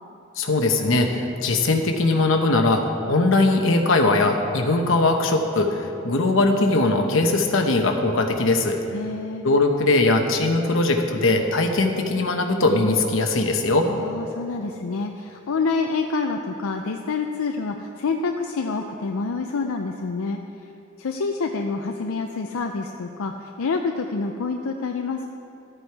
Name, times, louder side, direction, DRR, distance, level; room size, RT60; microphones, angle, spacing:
voice 1, 0.4-2.8 3.1-8.8 9.4-13.9, left 2 dB, 65° left, 4 dB, 1.0 m, -20 dB
voice 2, 8.9-9.4 13.9-20.4 21.0-25.3, left 4 dB, 80° left, 4 dB, 0.5 m, -27 dB
13.0 x 7.9 x 4.6 m, 2.8 s
head